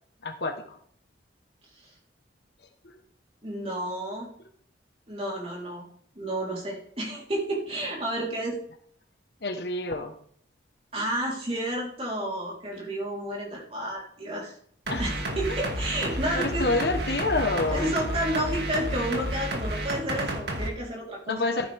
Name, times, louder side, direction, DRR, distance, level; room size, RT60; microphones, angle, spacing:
voice 1, 0.2-0.8 9.4-10.1 14.9-15.0 16.3-17.9 21.3-21.7, left 2 dB, 60° left, 6 dB, 1.3 m, -27 dB
voice 2, 3.4-4.3 5.1-5.8 6.2-8.6 10.9-14.5 15.0-16.7 17.7-21.4, right 1 dB, 30° right, -3 dB, 3.9 m, -31 dB
sound 1, 14.9-20.7, right 1 dB, 60° right, 2.3 m, -31 dB
14.0 x 11.5 x 3.6 m, 0.64 s
head